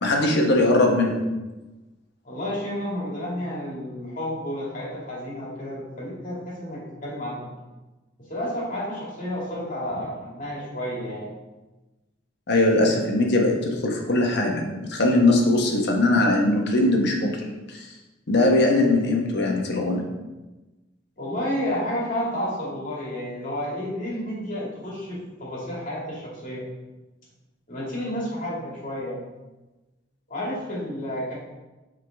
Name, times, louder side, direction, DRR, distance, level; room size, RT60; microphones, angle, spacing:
voice 1, 0.0-1.2 12.5-17.9 18.3-20.0, left 2 dB, 60° left, 1 dB, 1.1 m, -21 dB
voice 2, 2.2-7.5 8.2-11.3 21.2-26.7 27.7-29.2 30.3-31.3, equal, 45° left, -5 dB, 2.2 m, -31 dB
8.3 x 3.8 x 3.5 m, 1.1 s
head